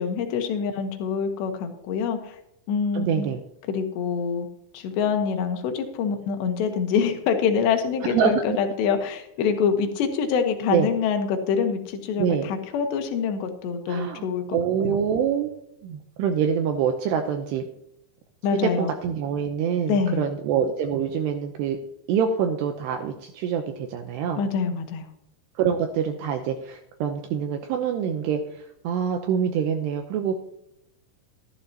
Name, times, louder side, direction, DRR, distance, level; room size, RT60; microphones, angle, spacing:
voice 1, 0.0-2.4 2.7-3.3 3.6-4.5 4.7-15.0 18.4-18.9 19.8-20.3 24.4-25.1, left 6 dB, 70° left, 5 dB, 3.1 m, -25 dB
voice 2, 2.9-3.4 8.1-8.6 10.7-10.9 12.2-12.5 13.9-14.2 14.5-15.5 15.8-17.7 18.6-21.8 22.1-24.4 25.6-30.4, right 7 dB, 80° right, 5 dB, 2.5 m, -25 dB
14.0 x 12.0 x 2.9 m, 0.78 s
omnidirectional pair, 5.6 m